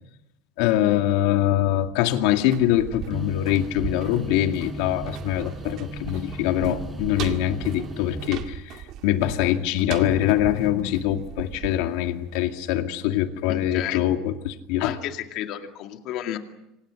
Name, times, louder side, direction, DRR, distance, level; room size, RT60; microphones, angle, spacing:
voice 1, 0.6-8.8 9.0-14.9, left 12 dB, 75° left, 7 dB, 2.1 m, -23 dB
sound 1, 2.3-13.1 13.4-13.5, right 11 dB, 50° right, 2.1 m, -39 dB
sound 2, 3.1-8.2, right 1 dB, 15° right, 4.4 m, -37 dB
voice 2, 13.5-14.0 14.8-16.4, left 11 dB, 50° left, 6 dB, 2.3 m, -32 dB
27.0 x 25.5 x 6.5 m, 0.87 s
cardioid pair, 155°, 0 cm